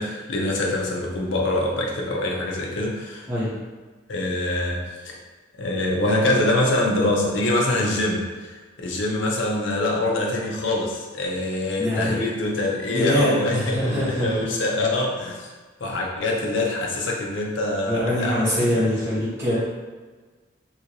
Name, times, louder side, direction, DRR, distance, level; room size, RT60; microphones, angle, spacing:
voice 1, 0.0-3.3 4.1-5.2 5.6-15.5 15.8-18.8, left 2 dB, 75° left, -1 dB, 0.6 m, -25 dB
voice 2, 11.8-12.2 12.9-14.3 17.9-19.6, equal, 15° right, -10 dB, 1.0 m, -23 dB
3.0 x 2.8 x 2.6 m, 1.4 s
head